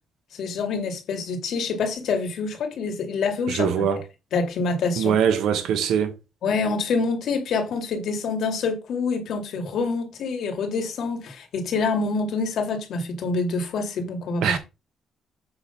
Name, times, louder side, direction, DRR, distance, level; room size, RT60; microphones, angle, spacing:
voice 1, 0.3-3.8 4.3-5.2 6.4-14.6, left 4 dB, 70° left, 2.3 m, -26 dB
voice 2, 3.5-4.0 5.0-6.2 14.4-14.6, right 8 dB, 85° right, 1.3 m, -22 dB
7.9 x 3.1 x 5.8 m
cardioid pair, 90°, 0 cm